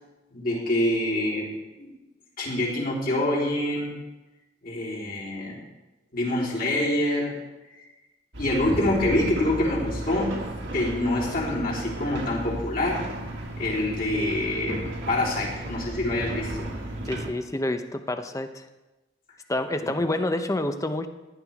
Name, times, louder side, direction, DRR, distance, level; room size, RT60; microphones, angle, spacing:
voice 1, 0.3-1.9 2.4-3.9 4.6-5.6 6.1-7.3 8.4-10.3 10.7-13.0 13.6-16.7 19.8-19.9, left 1 dB, 50° left, -5 dB, 3.7 m, -26 dB
sound 1, 8.3-17.3, right 1 dB, 75° right, 2.1 m, -34 dB
voice 2, 17.1-18.7 19.5-21.1, left 1 dB, 15° left, 8 dB, 0.8 m, -28 dB
16.0 x 11.0 x 3.6 m, 1.1 s
head